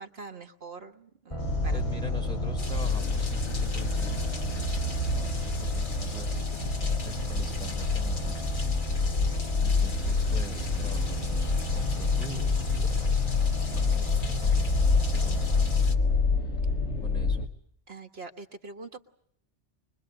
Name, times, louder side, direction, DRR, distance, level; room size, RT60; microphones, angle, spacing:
voice 1, 0.0-1.8 17.9-19.0, right 4 dB, 60° right, 5 dB, 1.7 m, -44 dB
sound 1, 1.3-16.0, right 3 dB, 25° left, 2.2 m, -37 dB
sound 2, 1.4-17.5, left 4 dB, 80° left, 1.6 m, -27 dB
voice 2, 1.7-8.6 8.9-9.3 9.6-16.0 17.0-17.5, left 1 dB, 5° left, 2 dB, 4.8 m, -44 dB
sound 3, 2.6-15.9, left 3 dB, 45° left, 1.5 m, -42 dB
24.0 x 22.0 x 7.8 m, 0.67 s
omnidirectional pair, 1.2 m